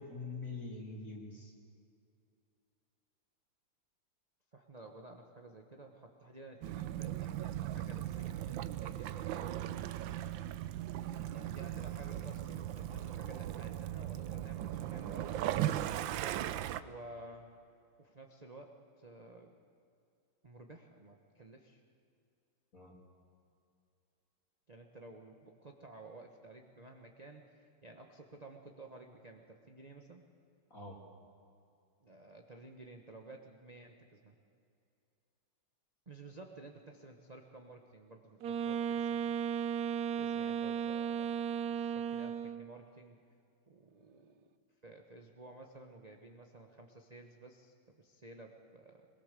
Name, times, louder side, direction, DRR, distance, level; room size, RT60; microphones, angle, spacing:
voice 1, 0.0-1.5 22.7-23.0 30.7-31.0, left 3 dB, 35° left, -1 dB, 3.5 m, -44 dB
voice 2, 4.5-10.1 11.3-16.5 16.8-17.6 18.0-19.5 20.4-21.8 24.7-30.2 32.0-34.4 36.1-39.4 40.2-43.2 43.7-44.5 44.8-49.1, right 2 dB, 30° right, 2 dB, 0.8 m, -53 dB
Waves surf / Splash splatter / Trickle dribble, 6.6-16.8, right 12 dB, 70° right, 1.2 m, -38 dB
Wind instrument woodwind instrument, 38.4-42.7, right 8 dB, 90° right, 0.8 m, -35 dB
23.0 x 21.5 x 6.8 m, 2.5 s
omnidirectional pair, 2.4 m